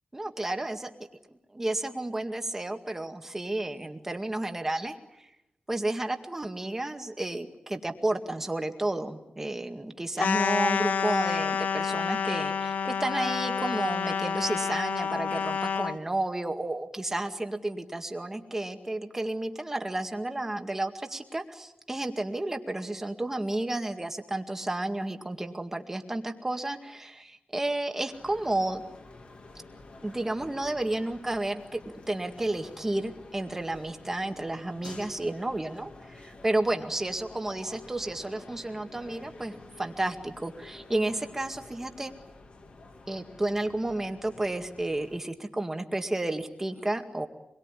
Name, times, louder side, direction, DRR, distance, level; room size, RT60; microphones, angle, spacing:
voice 1, 0.1-0.9 1.3-5.0 5.7-28.8 30.0-42.1 43.1-47.3, right 2 dB, 15° right, 5 dB, 2.0 m, -32 dB
sound 1, 10.2-16.0, left 6 dB, 75° left, 1.2 m, -29 dB
sound 2, 28.1-45.2, left 3 dB, 50° left, 3.2 m, -49 dB
26.5 x 22.0 x 9.9 m, 0.91 s
wide cardioid pair, 160°, 3 cm